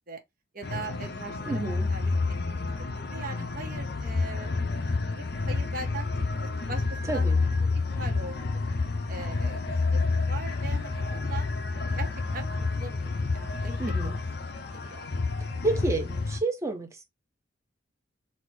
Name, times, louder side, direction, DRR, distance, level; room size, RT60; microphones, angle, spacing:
voice 1, 0.5-1.6 1.9-2.7 3.1-4.5 5.1-6.1 6.3-7.3 7.6-8.6 9.1-12.5 12.8-14.1 14.7-15.1, right 2 dB, 45° right, 0.8 m, -41 dB
sound 1, 0.6-16.4, left 3 dB, 55° left, 0.7 m, -29 dB
voice 2, 1.5-1.9 7.1-7.4 13.8-14.2 15.6-17.1, right 3 dB, 15° right, 0.7 m, -30 dB
4.2 x 2.1 x 4.4 m
head